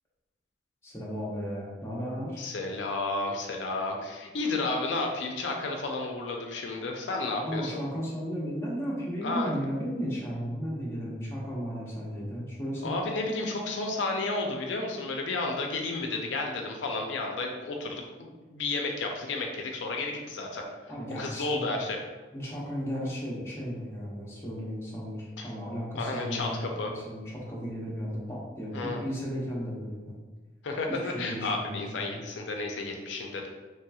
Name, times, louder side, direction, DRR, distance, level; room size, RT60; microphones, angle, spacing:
voice 1, 0.8-2.5 7.3-13.0 20.9-21.8 22.3-26.6 26.9-30.1 30.9-32.2, equal, 15° left, -6 dB, 0.7 m, -35 dB
voice 2, 2.4-7.8 9.2-9.5 12.8-20.6 21.2-22.0 25.4-25.5 25.9-26.9 28.7-29.0 30.6-33.5, left 3 dB, 75° left, 1 dB, 0.4 m, -32 dB
3.2 x 2.9 x 2.3 m, 1.3 s
head